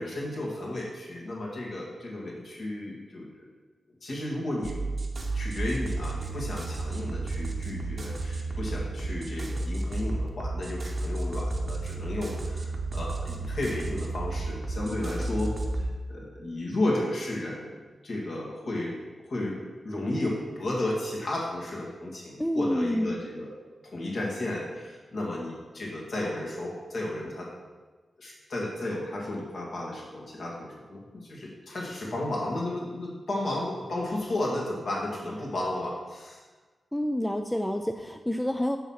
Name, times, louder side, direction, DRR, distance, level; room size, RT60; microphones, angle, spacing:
voice 1, 0.0-3.4 4.0-4.7 5.3-17.8 18.0-19.0 19.2-19.6 19.8-23.6 23.9-27.5 28.2-36.4, left 1 dB, 55° left, -3 dB, 2.3 m, -33 dB
sound 1, 4.6-15.9, right 2 dB, 30° right, 0.9 m, -32 dB
voice 2, 22.4-23.2 36.9-38.8, left 1 dB, 5° left, 5 dB, 0.3 m, -28 dB
7.0 x 6.2 x 5.7 m, 1.3 s
wide cardioid pair, 175°, 0 cm